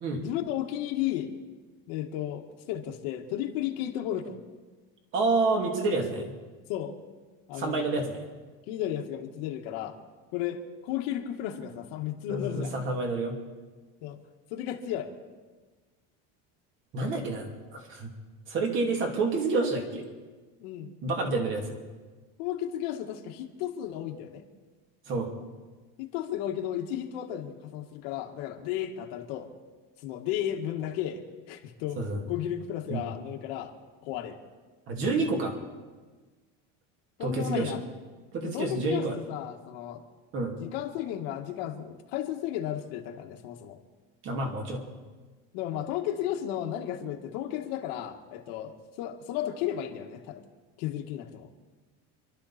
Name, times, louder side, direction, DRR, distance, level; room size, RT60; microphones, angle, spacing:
voice 1, 0.2-1.3 1.9-4.4 6.7-7.0 7.5-7.9 8.7-10.0 10.3-12.7 14.0-14.2 14.5-15.1 20.6-20.9 22.4-24.4 26.0-29.5 30.0-32.0 32.3-33.7 34.0-34.4 37.2-37.8 38.4-40.0 40.6-43.8 45.5-50.4 50.8-51.5, left 11 dB, 75° left, 3 dB, 1.9 m, -34 dB
voice 2, 5.1-6.3 7.5-8.3 12.3-13.4 16.9-18.1 18.5-20.0 21.0-21.8 25.1-25.3 32.0-32.2 32.9-33.0 34.9-35.5 37.2-37.7 38.3-39.2 40.3-40.6 44.2-44.8, right 3 dB, 40° right, 1 dB, 2.8 m, -28 dB
27.5 x 12.0 x 4.3 m, 1.3 s
cardioid pair, 170°, 30 cm